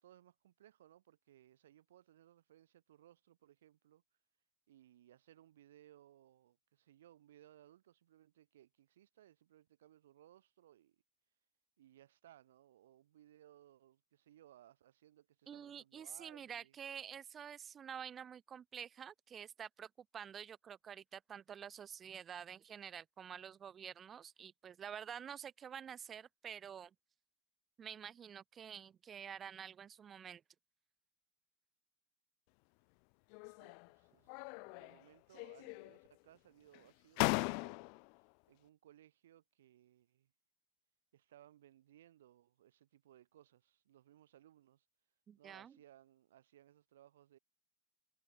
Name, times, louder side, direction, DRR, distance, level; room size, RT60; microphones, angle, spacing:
voice 1, 0.0-4.0 4.7-11.0 11.8-16.8 33.5-37.8 38.5-40.3 41.1-44.9 45.4-47.4, right 12 dB, 85° right, 1.5 m, -64 dB
voice 2, 15.5-26.9 27.8-30.4 45.3-45.8, right 8 dB, 30° right, 0.4 m, -49 dB
sound 1, 33.3-33.9 34.3-35.0 35.3-36.1 36.7-36.8 37.2-38.1, left 40 dB or more, 60° left, 0.4 m, -38 dB
supercardioid pair, 110°, 0 cm